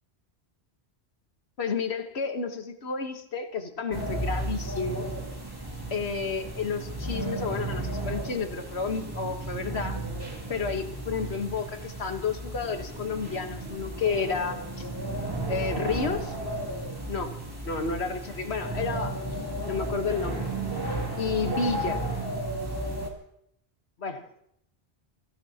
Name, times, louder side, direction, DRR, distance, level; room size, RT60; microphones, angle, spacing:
voice 1, 1.6-5.1 5.9-10.0 10.5-14.9 15.5-16.3 17.1-17.4 17.6-19.2 19.7-20.5 21.2-22.0 24.0-24.3, left 5 dB, 80° left, 6 dB, 1.6 m, -31 dB
sound 1, 3.9-23.1, right 2 dB, 20° right, 2.6 m, -34 dB
30.0 x 16.0 x 2.9 m, 0.73 s
omnidirectional pair, 1.1 m